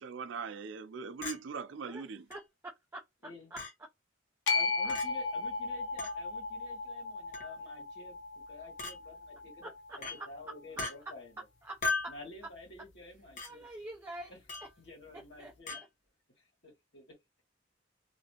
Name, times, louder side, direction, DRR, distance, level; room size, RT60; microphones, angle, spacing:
voice 1, 0.0-2.2, right 5 dB, 85° right, 0.4 m, -41 dB
Chink clink, 1.2-1.4 2.3-2.4 3.6-3.7 4.9-5.1 6.0-6.2 7.3-7.6 8.8-9.0 10.0-10.2 10.8-10.9 11.8-12.2 13.4-13.5 14.5-14.7 15.7-15.8, left 3 dB, 45° left, 1.1 m, -36 dB
voice 2, 2.3-3.0 3.5-3.6 4.5-4.6 4.8-4.9 9.6-10.3 11.6-11.8 13.4-14.4 15.1-15.9, right 1 dB, 15° right, 0.6 m, -46 dB
sound 1, 4.5-10.7, left 4 dB, 85° left, 0.6 m, -36 dB
voice 3, 4.5-9.7 10.1-11.4 12.1-13.7 14.3-14.4 14.8-15.8 16.4-17.4, left 2 dB, 65° left, 1.5 m, -51 dB
2.8 x 2.5 x 2.8 m
head